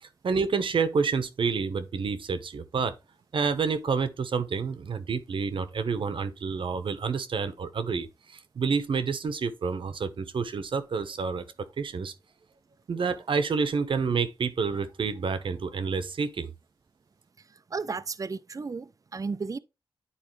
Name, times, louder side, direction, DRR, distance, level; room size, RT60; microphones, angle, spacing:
voice 1, 0.0-2.9 3.3-11.4 11.8-12.1 12.9-16.5, right 5 dB, 70° right, 1.0 m, -29 dB
voice 2, 17.7-19.6, right 4 dB, 40° right, 0.5 m, -33 dB
10.0 x 4.1 x 3.2 m
cardioid pair, 65°, 9 cm